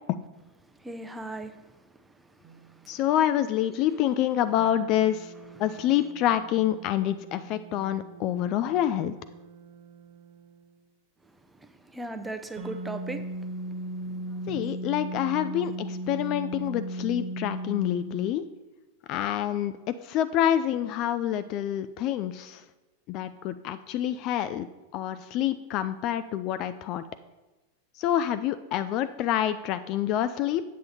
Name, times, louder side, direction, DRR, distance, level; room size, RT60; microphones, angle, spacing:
voice 1, 0.8-1.5 11.9-13.2 14.1-14.2, right 2 dB, 5° right, 8 dB, 0.7 m, -36 dB
sound 1, 2.4-2.8 4.6-10.8 12.6-18.3, right 1 dB, 50° right, 0.8 m, -38 dB
voice 2, 2.9-5.3 5.6-9.1 14.5-18.5 19.1-22.6 23.1-27.0 27.9-30.6, left 11 dB, 40° left, 12 dB, 0.4 m, -27 dB
8.3 x 7.9 x 4.2 m, 1.1 s
figure-of-eight pair, 90°, 0 cm